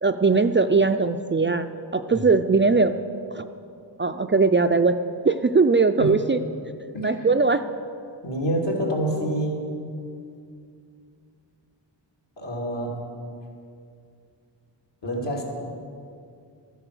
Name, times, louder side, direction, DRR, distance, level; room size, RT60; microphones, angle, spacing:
voice 1, 0.0-3.0 3.3-3.4 4.0-5.0 5.2-6.4 7.0-7.6, right 4 dB, 25° right, 8 dB, 0.4 m, -20 dB
voice 2, 6.9-7.3 8.2-9.6 12.4-13.0 15.0-15.4, right 1 dB, 70° left, -2 dB, 2.8 m, -27 dB
13.0 x 9.9 x 6.7 m, 2.4 s
wide cardioid pair, 80°, 45 cm